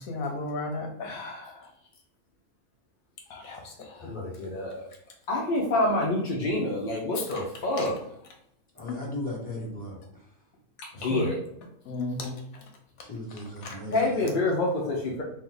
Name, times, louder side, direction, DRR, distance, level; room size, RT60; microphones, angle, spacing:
voice 1, 0.1-1.6 3.3-3.9 7.2-7.4 7.8-7.9 10.9-11.3 11.9-12.4 13.6-13.7, left 2 dB, 75° left, 1 dB, 1.2 m, -34 dB
voice 2, 4.0-4.7 5.3-7.9 11.0-11.4 13.9-15.2, left 2 dB, 45° left, -3 dB, 0.6 m, -27 dB
voice 3, 8.7-10.3 13.0-14.3, left 1 dB, 5° left, -5 dB, 1.4 m, -37 dB
4.3 x 2.4 x 3.8 m, 0.76 s
omnidirectional pair, 1.5 m